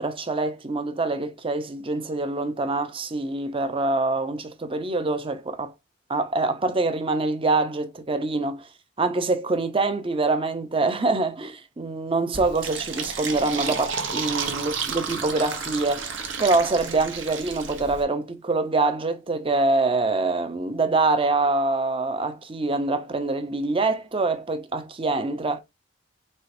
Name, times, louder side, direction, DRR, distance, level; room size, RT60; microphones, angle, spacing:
voice 1, 0.0-5.7 6.1-8.7 9.0-25.6, right 3 dB, 30° right, 0.6 m, -25 dB
Fill (with liquid), 12.3-18.0, right 5 dB, 80° right, 0.9 m, -31 dB
4.4 x 3.3 x 2.6 m
head